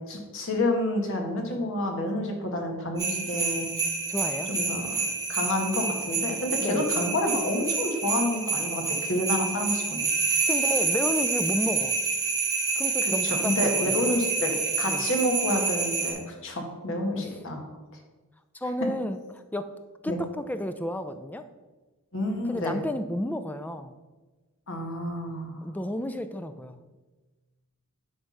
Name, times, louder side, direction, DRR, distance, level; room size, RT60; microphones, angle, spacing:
voice 1, 0.1-3.7 4.5-5.0 5.3-10.0 13.0-17.6 20.1-20.2 22.1-22.8 24.7-25.6, left 1 dB, 60° left, 2 dB, 1.5 m, -29 dB
sound 1, 3.0-16.1, right 4 dB, 15° right, 1.7 m, -28 dB
voice 2, 4.1-4.5 6.6-6.8 10.5-12.0 12.8-14.1 14.9-15.0 16.9-17.3 18.5-19.7 20.0-21.4 22.4-23.9 25.6-26.8, left 1 dB, 5° left, 10 dB, 0.4 m, -32 dB
9.7 x 3.4 x 5.4 m, 1.2 s
head